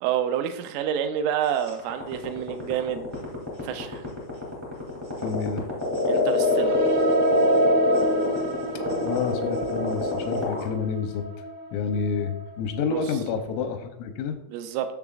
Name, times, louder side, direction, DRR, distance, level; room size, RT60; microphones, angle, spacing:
voice 1, 0.0-3.1 3.6-4.0 6.1-7.0 12.9-13.0 14.5-15.0, right 9 dB, 85° right, 7 dB, 3.1 m, -28 dB
sound 1, 1.7-10.6, left 1 dB, 10° right, 1.0 m, -23 dB
voice 2, 5.2-5.6 9.0-11.3 11.7-14.4, left 5 dB, 90° left, 7 dB, 3.5 m, -29 dB
sound 2, 6.4-13.7, right 3 dB, 55° right, 3.7 m, -35 dB
10.5 x 7.0 x 2.5 m, 0.78 s
omnidirectional pair, 5.7 m